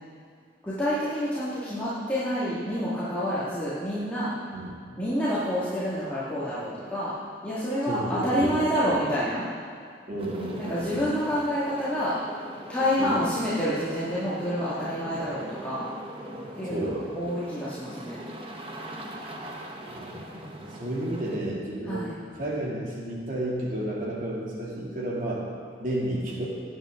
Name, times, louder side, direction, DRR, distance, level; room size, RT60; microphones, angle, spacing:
voice 1, 0.6-4.3 5.0-7.2 7.4-9.4 10.6-12.1 12.7-15.9 16.6-16.9 17.2-18.2 21.8-22.1, equal, 10° left, -12 dB, 2.2 m, -28 dB
voice 2, 7.8-8.7 10.1-11.1 13.0-13.2 16.6-17.1 19.9-25.4 25.8-26.4, right 1 dB, 50° right, -5 dB, 2.8 m, -32 dB
sound 1, 10.2-21.4, right 1 dB, 30° right, 1.1 m, -42 dB
18.5 x 9.1 x 3.8 m, 2.1 s
head